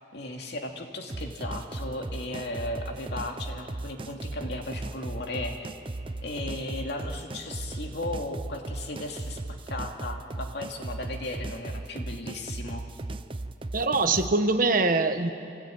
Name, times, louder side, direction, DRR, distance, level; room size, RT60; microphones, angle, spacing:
voice 1, 0.1-5.7 6.2-9.4 9.7-12.9, left 1 dB, 60° left, 2 dB, 2.4 m, -36 dB
sound 1, 1.1-14.3, right 2 dB, 25° right, 0.6 m, -37 dB
voice 2, 13.7-15.3, right 3 dB, 45° right, 8 dB, 1.2 m, -23 dB
26.5 x 17.5 x 9.2 m, 2.5 s
head